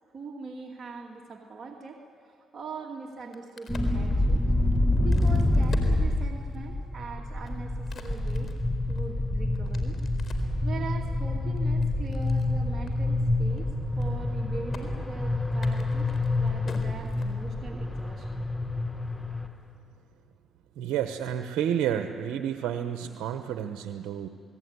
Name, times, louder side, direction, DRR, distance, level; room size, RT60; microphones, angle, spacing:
voice 1, 0.1-4.4 5.0-8.5 8.9-10.0 10.6-13.7 14.0-16.1 16.4-18.3, right 4 dB, 40° right, -1 dB, 2.5 m, -41 dB
Crack, 3.1-6.7 7.2-10.6 11.1-12.5 12.9-13.0 13.2-13.6 13.9-14.4 14.7-14.8 15.5-17.7, left 5 dB, 55° left, 4.1 m, -48 dB
sound 1, 3.7-19.5, left 2 dB, 10° left, 1.7 m, -27 dB
voice 2, 20.8-24.3, right 9 dB, 80° right, 7 dB, 1.1 m, -30 dB
29.5 x 19.5 x 9.6 m, 2.3 s
cardioid pair, 75°, 0 cm